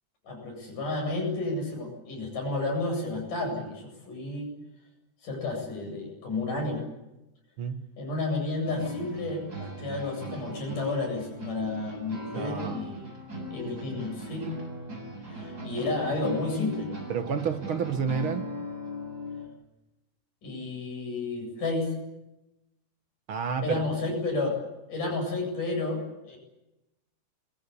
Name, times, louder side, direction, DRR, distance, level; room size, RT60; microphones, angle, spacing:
voice 1, 0.2-4.5 5.2-6.8 8.0-13.1 13.5-14.4 15.3-16.9 20.4-21.9 23.6-24.6 24.9-26.4, left 2 dB, 60° left, 2 dB, 9.7 m, -31 dB
voice 2, 7.6-7.9 12.3-12.9 17.1-18.5 23.3-23.8, right 6 dB, 50° right, 7 dB, 1.6 m, -30 dB
sound 1, 8.6-19.5, equal, 25° right, 7.9 m, -39 dB
27.0 x 23.0 x 8.6 m, 0.95 s
omnidirectional pair, 4.3 m